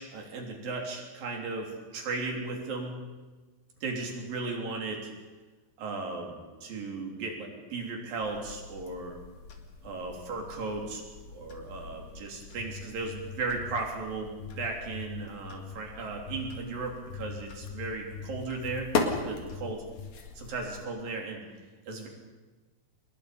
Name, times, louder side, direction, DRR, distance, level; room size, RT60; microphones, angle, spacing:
voice 1, 0.0-1.7 1.9-3.0 3.8-5.0 5.8-9.2 9.8-11.0 11.3-18.9 19.2-19.8 20.4-21.4 21.9-22.1, right 3 dB, 75° right, 1 dB, 5.1 m, -36 dB
sound 1, 8.2-20.8, left 4 dB, 55° left, 3.1 m, -39 dB
sound 2, 12.4-13.8 14.4-15.8 16.3-16.6 17.1-19.2 19.5-20.1, left 8 dB, 75° left, 2.4 m, -42 dB
26.5 x 21.0 x 5.2 m, 1.3 s
omnidirectional pair, 4.1 m